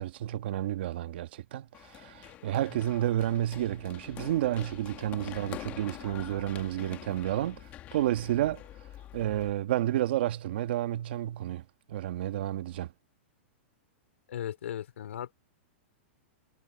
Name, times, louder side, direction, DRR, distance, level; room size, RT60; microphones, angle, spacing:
voice 1, 0.0-8.6 9.1-12.9, right 13 dB, 55° right, 1.3 m, -31 dB
Run, 1.7-9.5, left 13 dB, 25° left, 1.7 m, -46 dB
voice 2, 14.3-15.3, left 10 dB, 85° left, 3.3 m, -37 dB
supercardioid pair, 170°, 7 cm